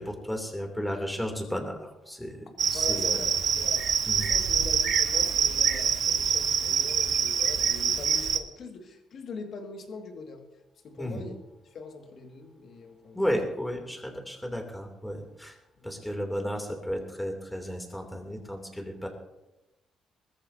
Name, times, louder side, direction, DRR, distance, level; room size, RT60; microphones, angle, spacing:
voice 1, 0.0-3.2 4.1-4.3 11.0-11.3 13.1-15.6 15.8-19.1, equal, 5° left, 3 dB, 3.1 m, -33 dB
Cricket, 2.6-8.4, right 7 dB, 60° right, 1.1 m, -25 dB
voice 2, 2.7-3.9 4.1-10.5 10.8-11.4 11.7-13.2 15.8-16.1, left 4 dB, 60° left, 3 dB, 2.2 m, -42 dB
21.0 x 14.0 x 2.9 m, 0.97 s
cardioid pair, 90°, 0 cm